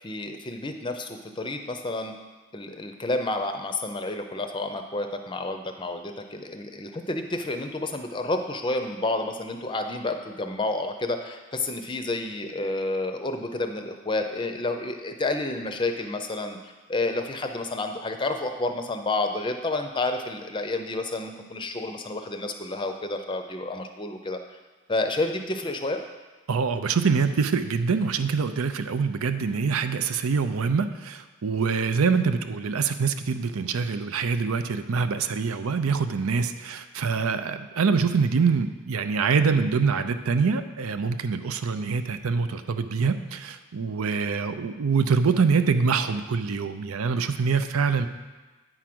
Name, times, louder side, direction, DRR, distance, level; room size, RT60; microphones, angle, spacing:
voice 1, 0.0-2.1 2.5-16.6 16.9-24.4 24.9-26.0, left 2 dB, 20° left, 6 dB, 0.5 m, -30 dB
voice 2, 26.5-48.1, right 5 dB, 90° right, 10 dB, 0.5 m, -25 dB
9.1 x 4.9 x 6.0 m, 1.2 s
head